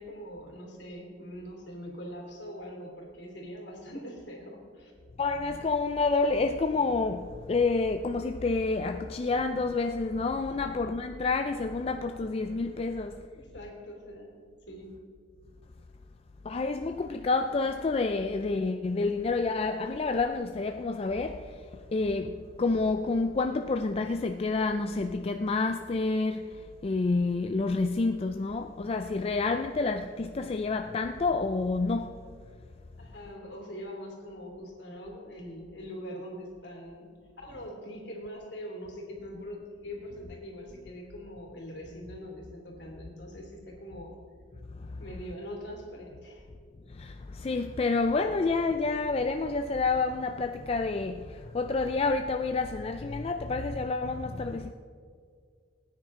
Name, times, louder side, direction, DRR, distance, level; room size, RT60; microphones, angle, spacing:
voice 1, 0.0-4.9 10.6-10.7 13.3-14.4 14.7-14.9 33.0-37.1 37.4-44.2 45.0-46.4, equal, 65° left, 3.0 m, -43 dB
voice 2, 5.2-13.3 16.4-32.2 44.8-45.0 46.9-54.7, left 3 dB, 30° left, 0.4 m, -29 dB
19.0 x 9.5 x 3.7 m
head